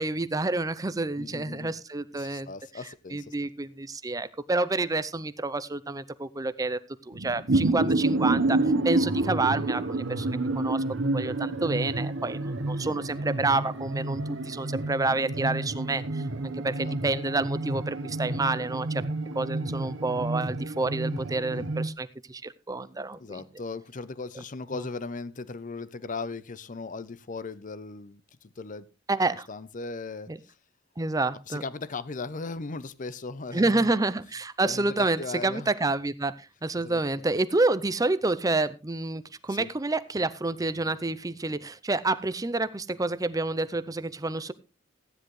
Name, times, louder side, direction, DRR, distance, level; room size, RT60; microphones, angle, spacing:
voice 1, 0.0-2.5 3.1-6.8 7.1-8.6 8.8-19.0 19.4-23.4 24.7-24.8 29.1-29.5 30.3-30.4 31.0-31.6 33.5-44.5, right 2 dB, 20° right, 14 dB, 0.6 m, -29 dB
voice 2, 1.2-1.7 2.2-3.5 7.5-7.7 12.7-13.0 16.8-17.0 21.1-21.2 21.5-21.7 23.2-28.9 29.5-30.3 31.5-33.9 34.6-35.7 36.8-37.4 39.5-39.7, left 3 dB, 45° left, 16 dB, 0.7 m, -38 dB
sound 1, 7.1-21.9, right 2 dB, 80° right, 1.1 m, -29 dB
15.0 x 9.9 x 3.2 m, 0.29 s
head